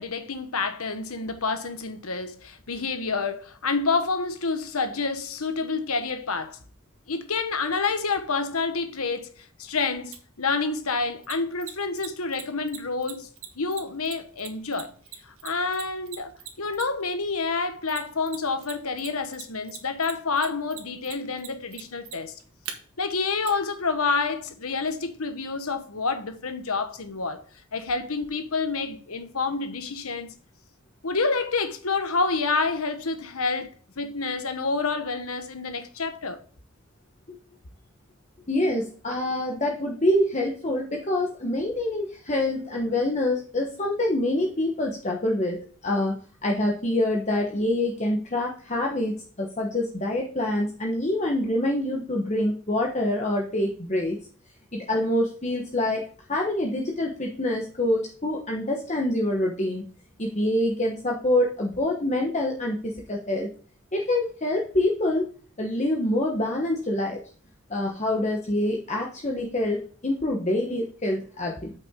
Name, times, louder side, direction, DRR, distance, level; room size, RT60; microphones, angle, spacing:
voice 1, 0.0-6.6 7.1-13.3 13.6-14.9 15.3-16.3 16.6-22.4 23.0-27.4 27.7-30.3 31.0-33.7 34.0-36.4, left 4 dB, 75° left, 1.2 m, -28 dB
Mechanisms, 10.1-10.2 11.2-17.1 17.9-18.7 19.0-22.7 23.5-23.6, right 11 dB, 65° right, 1.4 m, -39 dB
voice 2, 38.5-46.1 46.4-54.2 54.9-56.0 56.3-59.8 60.2-63.5 63.9-65.2 65.6-67.2 67.7-71.7, left 1 dB, 30° left, 1.1 m, -26 dB
8.5 x 5.9 x 3.7 m
head